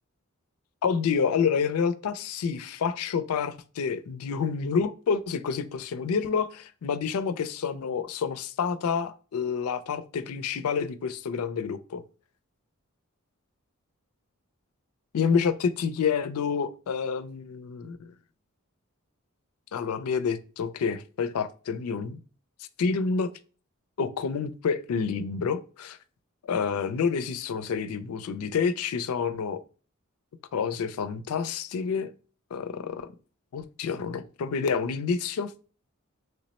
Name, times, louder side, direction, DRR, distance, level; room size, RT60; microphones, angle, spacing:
voice 1, 0.8-12.0 15.1-18.1 19.7-22.2 22.8-23.3 24.0-26.0 26.4-29.6 30.5-32.1 32.5-33.1 33.5-35.5, left 6 dB, 80° left, 0.4 m, -28 dB
3.3 x 2.0 x 4.0 m
head